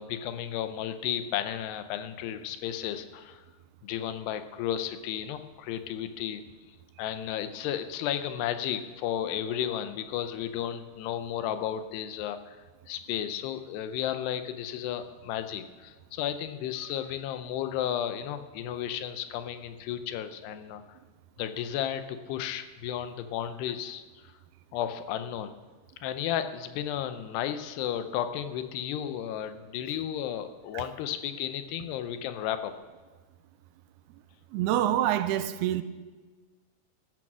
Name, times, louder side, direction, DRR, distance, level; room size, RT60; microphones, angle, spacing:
voice 1, 0.0-3.4 3.8-6.4 7.0-12.6 12.9-21.0 21.4-24.0 24.7-25.5 26.0-32.7, left 10 dB, 85° left, 10 dB, 2.9 m, -33 dB
voice 2, 34.5-35.8, right 12 dB, 80° right, 11 dB, 2.6 m, -26 dB
15.0 x 12.5 x 6.1 m, 1.4 s
omnidirectional pair, 4.7 m